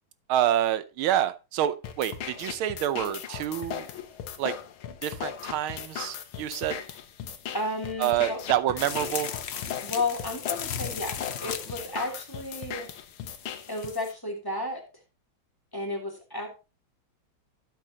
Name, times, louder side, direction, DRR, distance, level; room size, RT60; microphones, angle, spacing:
voice 1, 0.3-3.9 4.4-4.5 5.0-6.8 8.0-9.3, right 11 dB, 90° right, 14 dB, 1.6 m, -27 dB
sound 1, 1.8-13.9, left 9 dB, 90° left, 1.9 m, -38 dB
voice 2, 7.5-8.4 9.8-11.1 11.4-12.9 13.7-14.8 15.7-16.5, left 2 dB, 10° left, 1 dB, 2.8 m, -32 dB
sound 2, 8.8-14.1, left 8 dB, 65° left, 0.6 m, -37 dB
13.0 x 7.7 x 2.8 m, 0.29 s
omnidirectional pair, 2.2 m